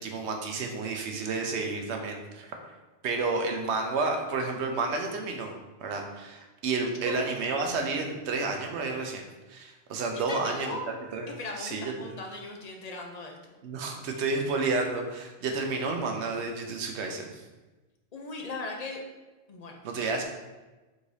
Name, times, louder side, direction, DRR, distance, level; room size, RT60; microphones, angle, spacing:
voice 1, 0.0-2.5 3.0-5.5 5.8-9.2 9.5-10.8 11.1-11.3 11.6-12.1 13.6-17.4 19.8-20.2, right 3 dB, 80° right, 3 dB, 1.0 m, -31 dB
voice 2, 10.3-10.8 11.4-13.4 13.9-14.0 18.1-19.0 19.5-19.8, left 3 dB, 45° left, 1 dB, 0.6 m, -38 dB
4.8 x 3.8 x 2.7 m, 1.2 s
omnidirectional pair, 1.1 m